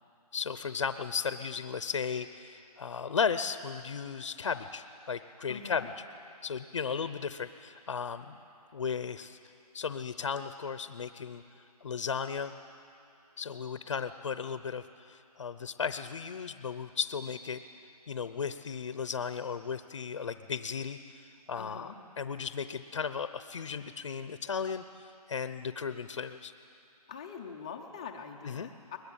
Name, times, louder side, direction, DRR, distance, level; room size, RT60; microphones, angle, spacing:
voice 1, 0.3-5.9 6.4-8.4 8.7-9.4 9.7-11.4 11.8-12.5 13.4-17.6 18.1-26.5 28.4-28.7, left 6 dB, 45° left, 11 dB, 0.7 m, -35 dB
voice 2, 5.5-5.9 21.6-21.9 27.1-29.0, left 6 dB, 10° left, 2 dB, 0.5 m, -43 dB
22.5 x 20.5 x 8.8 m, 2.7 s
hypercardioid pair, 175°, 20 cm